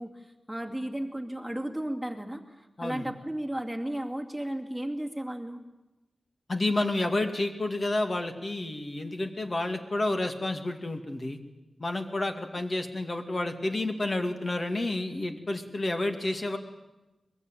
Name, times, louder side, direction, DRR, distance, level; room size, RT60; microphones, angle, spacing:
voice 1, 0.0-5.6, right 1 dB, ahead, 2 dB, 2.4 m, -34 dB
voice 2, 6.5-11.4 11.8-16.6, left 2 dB, 35° left, 6 dB, 2.3 m, -30 dB
23.0 x 21.0 x 9.2 m, 1.0 s
wide cardioid pair, 125°, 0 cm